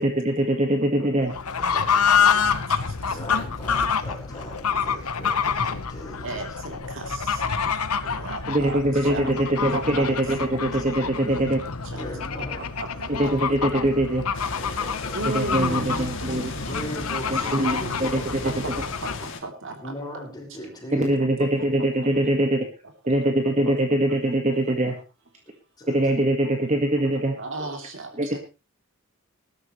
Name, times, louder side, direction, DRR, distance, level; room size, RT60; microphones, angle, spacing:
voice 1, 0.0-1.3 8.5-11.6 13.1-14.2 15.3-16.5 17.3-18.5 20.9-22.7 23.1-24.9 25.9-27.4 28.2-28.4, right 1 dB, 30° right, 3 dB, 1.6 m, -23 dB
Fowl / Bird, 1.3-19.3, left 6 dB, 90° left, 1.2 m, -27 dB
voice 2, 1.7-2.4 3.1-6.3 9.1-9.7 11.9-12.7 13.1-13.4 14.6-15.9 16.7-18.3 19.8-21.9 23.6-23.7 25.8-26.0 27.6-27.7, equal, 20° left, -1 dB, 5.2 m, -39 dB
voice 3, 2.3-3.4 4.7-4.8 6.2-10.5 11.0-11.1 11.8-12.1 12.4-13.1 15.1-16.8 17.2-20.2 21.0-21.1 23.0-23.3 24.7-25.0 26.4-26.5 26.9-27.0 27.4-28.4, right 2 dB, 60° right, 4 dB, 3.2 m, -37 dB
sound 1, 14.3-19.4, left 3 dB, 60° left, 2.7 m, -36 dB
20.0 x 12.5 x 3.2 m, 0.30 s
head